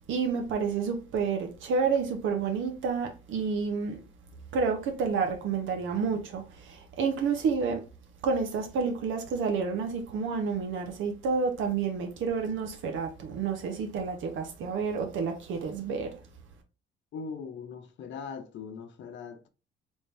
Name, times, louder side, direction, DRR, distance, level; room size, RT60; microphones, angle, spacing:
voice 1, 0.1-4.0 4.5-7.8 8.2-16.2, right 5 dB, 75° right, 0.8 m, -29 dB
voice 2, 17.1-19.5, left 5 dB, 70° left, 0.7 m, -40 dB
3.6 x 2.6 x 3.3 m
cardioid pair, 90°, 20 cm